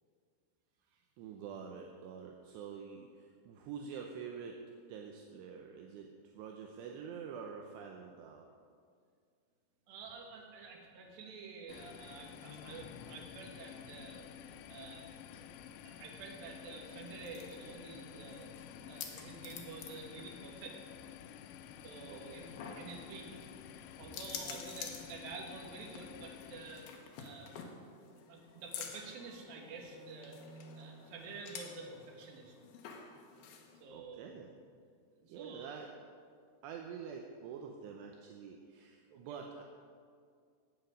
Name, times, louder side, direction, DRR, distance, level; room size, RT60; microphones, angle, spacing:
voice 1, 1.2-4.6 4.9-6.1 6.3-8.4 22.1-22.5 24.0-24.6 33.0-33.1 33.9-34.6 35.3-35.9 36.6-39.6, right 6 dB, 80° right, 2 dB, 2.5 m, -47 dB
voice 2, 9.9-14.3 14.7-15.4 15.8-18.5 18.9-20.8 21.8-23.3 24.0-26.9 27.2-27.7 28.3-32.5 33.8-34.3 35.2-35.9 39.1-39.2, right 4 dB, 60° right, 0 dB, 2.8 m, -49 dB
sound 1, 11.7-27.0, left 9 dB, 90° left, 3.1 m, -51 dB
sound 2, 16.8-33.8, left 6 dB, 70° left, 2.4 m, -50 dB
17.0 x 8.0 x 5.1 m, 2.2 s
omnidirectional pair, 5.6 m